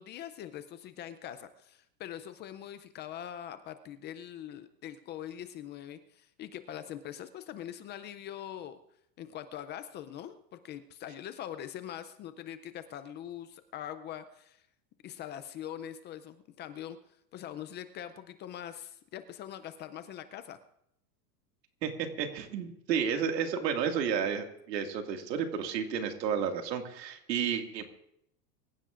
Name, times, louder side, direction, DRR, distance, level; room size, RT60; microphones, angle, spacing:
voice 1, 0.0-8.8 9.2-14.6 15.0-17.0 17.3-20.6, left 10 dB, 20° left, 11 dB, 0.4 m, -43 dB
voice 2, 21.8-27.8, right 7 dB, 80° right, 5 dB, 2.2 m, -32 dB
24.0 x 15.0 x 2.5 m, 0.75 s
hypercardioid pair, 125°, 49 cm